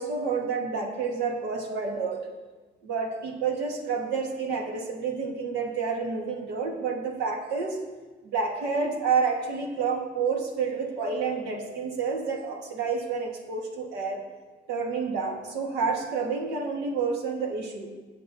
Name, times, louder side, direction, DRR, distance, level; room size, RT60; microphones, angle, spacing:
voice 1, 0.0-2.3 2.8-7.8 8.2-14.2 14.7-17.9, right 5 dB, 80° right, 2 dB, 1.5 m, -29 dB
17.0 x 7.5 x 2.7 m, 1.3 s
cardioid pair, 110°, 17 cm